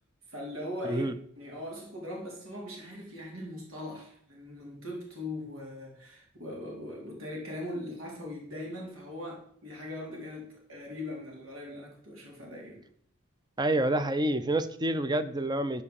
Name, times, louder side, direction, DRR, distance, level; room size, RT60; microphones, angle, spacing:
voice 1, 0.3-1.1 1.4-12.8, left 1 dB, 80° right, -2 dB, 3.8 m, -40 dB
voice 2, 0.8-1.1 13.6-15.8, right 1 dB, 20° right, 11 dB, 0.7 m, -28 dB
12.5 x 4.8 x 7.1 m, 0.65 s
head